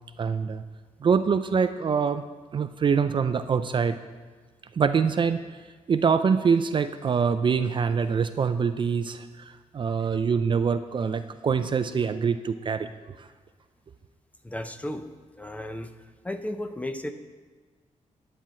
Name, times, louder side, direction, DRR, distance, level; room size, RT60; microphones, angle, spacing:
voice 1, 0.2-0.6 1.0-2.2 2.5-3.9 4.8-5.4 5.9-9.3 9.7-12.9, right 6 dB, 40° right, 10 dB, 0.4 m, -24 dB
voice 2, 14.4-15.1 15.4-17.1, left 1 dB, 10° left, 8 dB, 0.6 m, -34 dB
10.5 x 4.5 x 7.4 m, 1.4 s
cardioid pair, 105°, 13 cm